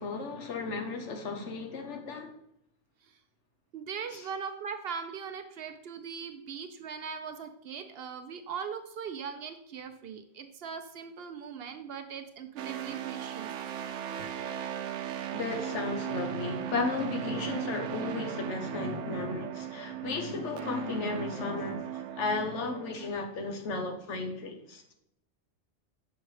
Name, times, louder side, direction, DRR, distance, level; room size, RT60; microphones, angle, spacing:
voice 1, 0.0-2.3 4.1-4.3 15.3-24.8, left 3 dB, 75° left, 1.2 m, -34 dB
voice 2, 3.7-13.5 14.4-14.5, right 6 dB, 65° right, 0.7 m, -40 dB
sound 1, 12.6-23.1, right 11 dB, 90° right, 0.9 m, -37 dB
6.1 x 6.1 x 3.2 m
omnidirectional pair, 1.2 m